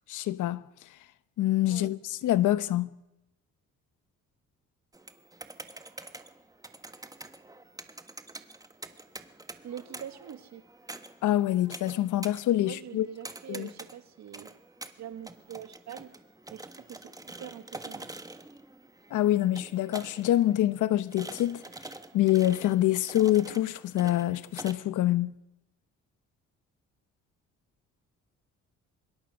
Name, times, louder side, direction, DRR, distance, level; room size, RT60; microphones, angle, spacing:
voice 1, 0.1-0.6 1.4-2.9 11.2-13.1 13.5-13.7 19.1-21.6 22.1-25.3, left 14 dB, 80° left, 1.0 m, -26 dB
sound 1, 4.9-24.7, right 2 dB, 10° right, 1.5 m, -46 dB
voice 2, 9.5-10.6 12.6-14.5 15.0-16.1 16.5-18.1, right 10 dB, 65° right, 1.9 m, -44 dB
25.0 x 22.0 x 6.4 m
cardioid pair, 90°, 30 cm